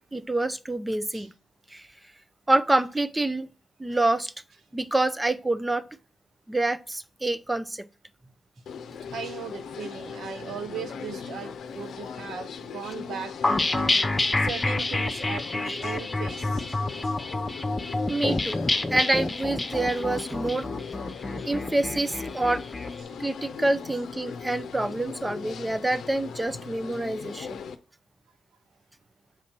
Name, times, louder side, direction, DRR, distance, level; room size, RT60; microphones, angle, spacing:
voice 1, 0.1-1.3 1.7-1.9 2.5-3.5 3.8-4.3 4.7-5.9 6.5-7.9 15.7-16.0 16.9-17.0 18.1-18.6 18.9-20.7 21.4-22.6 23.2-27.6, right 2 dB, 15° right, 0.5 m, -27 dB
sound 1, 8.7-27.8, left 6 dB, 80° left, 0.6 m, -39 dB
voice 2, 9.1-14.1 14.4-17.2 21.8-21.9 26.6-26.7, right 7 dB, 75° right, 0.9 m, -38 dB
sound 2, 13.4-22.9, left 2 dB, 25° left, 0.7 m, -28 dB
7.4 x 2.8 x 5.9 m
supercardioid pair, 55°, 0 cm